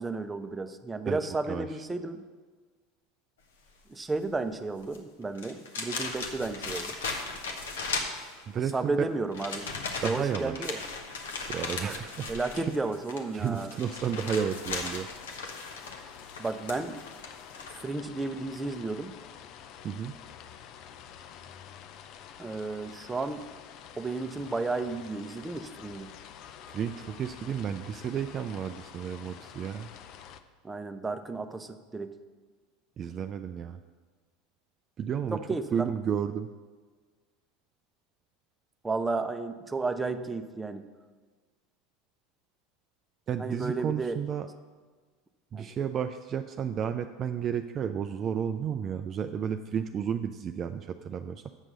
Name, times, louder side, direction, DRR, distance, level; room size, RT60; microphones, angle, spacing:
voice 1, 0.0-2.2 3.9-6.9 8.7-9.7 10.0-10.8 12.3-13.7 16.4-17.0 17.8-19.1 22.4-23.5 24.0-26.1 30.6-32.2 35.3-35.9 38.8-40.9 43.4-44.2 45.5-45.7, right 3 dB, 15° right, 8 dB, 0.7 m, -33 dB
sound 1, 4.8-5.0 5.4-8.7 9.3-17.8, left 4 dB, 80° left, 1.1 m, -37 dB
voice 2, 8.5-9.1 10.0-10.8 11.5-12.3 12.6-12.7 13.3-15.1 19.8-20.1 26.7-29.9 33.0-33.8 35.0-35.4 35.7-36.5 43.3-44.5 45.5-51.5, right 8 dB, 40° right, 7 dB, 0.4 m, -32 dB
sound 2, 13.8-30.4, left 9 dB, 55° left, 0.6 m, -48 dB
8.1 x 6.0 x 6.6 m, 1.5 s
hypercardioid pair, 80°, 0 cm